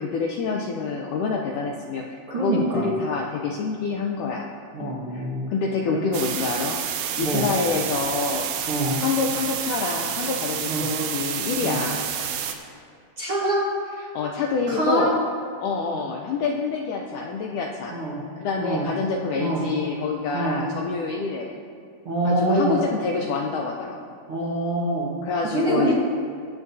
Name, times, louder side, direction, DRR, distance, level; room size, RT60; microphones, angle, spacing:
voice 1, 0.0-4.5 4.8-5.2 5.5-6.8 7.2-8.5 9.0-12.3 14.1-15.2 15.6-18.0 18.4-21.6 22.2-24.0 25.2-25.9, left 4 dB, 80° left, 0 dB, 1.9 m, -27 dB
voice 2, 2.3-2.9 4.7-5.5 5.9-6.0 7.2-7.5 8.7-9.0 10.7-10.9 11.6-11.8 13.2-13.6 14.7-15.1 15.9-16.0 17.9-18.2 18.6-18.9 19.4-19.6 20.3-20.6 22.0-22.8 24.3-25.1 25.5-25.9, right 1 dB, 55° right, -6 dB, 1.7 m, -25 dB
sound 1, 6.1-12.5, right 8 dB, 80° right, 2.5 m, -29 dB
21.5 x 8.6 x 2.7 m, 2.3 s
omnidirectional pair, 4.3 m